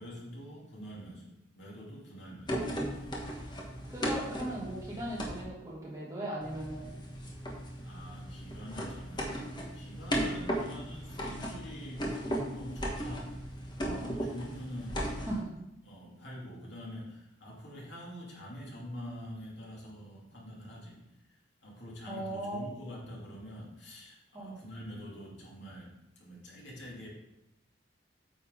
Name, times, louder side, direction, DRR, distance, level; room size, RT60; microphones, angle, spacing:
voice 1, 0.0-2.6 2.9-3.1 7.8-13.3 13.9-15.3 15.8-25.9 26.2-27.1, equal, 70° left, -4 dB, 2.7 m, -46 dB
sound 1, 2.5-5.4 6.4-15.4, equal, 25° left, 1.3 m, -36 dB
voice 2, 3.9-6.9 13.9-14.1 15.3-15.6 22.1-22.6 24.3-24.6, right 1 dB, 15° right, -5 dB, 2.2 m, -38 dB
8.8 x 6.6 x 3.7 m, 0.88 s
head